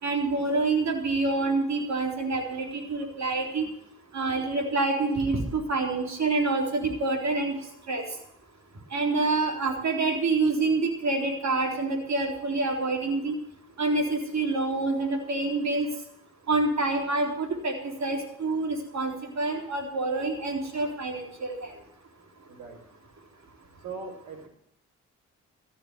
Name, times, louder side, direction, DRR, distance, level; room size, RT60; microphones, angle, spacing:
voice 1, 0.0-3.7 4.1-7.5 7.9-8.0 8.9-13.4 13.8-15.9 16.5-21.7, right 3 dB, 55° right, 2 dB, 3.8 m, -27 dB
voice 2, 22.5-22.8 23.7-24.5, right 4 dB, 75° right, 2 dB, 4.4 m, -40 dB
14.5 x 6.9 x 9.6 m, 0.75 s
supercardioid pair, 50°, 32 cm